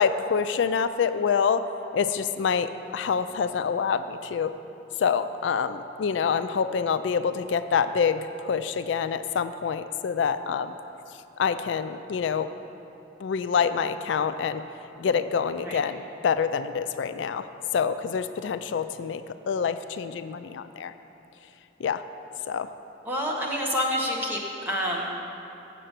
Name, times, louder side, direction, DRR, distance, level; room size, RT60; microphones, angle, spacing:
voice 1, 0.0-1.6 1.9-4.5 5.0-10.7 11.4-12.5 13.2-14.6 15.0-17.5 17.7-20.9 21.8-22.0 22.5-22.7, left 6 dB, 80° left, 11 dB, 0.3 m, -26 dB
voice 2, 23.0-24.4 24.6-25.1, equal, 10° right, -3 dB, 1.1 m, -27 dB
7.6 x 6.8 x 8.1 m, 3.0 s
head